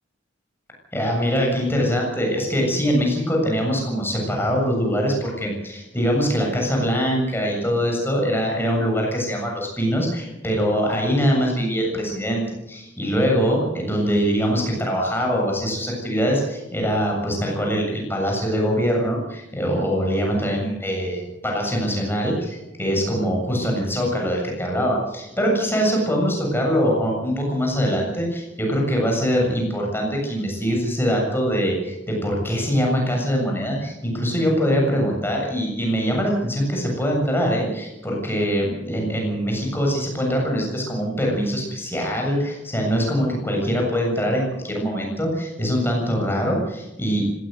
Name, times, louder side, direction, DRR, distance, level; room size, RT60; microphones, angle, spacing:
voice 1, 0.9-47.4, equal, 10° left, 0 dB, 7.4 m, -23 dB
19.5 x 17.5 x 8.1 m, 0.94 s
head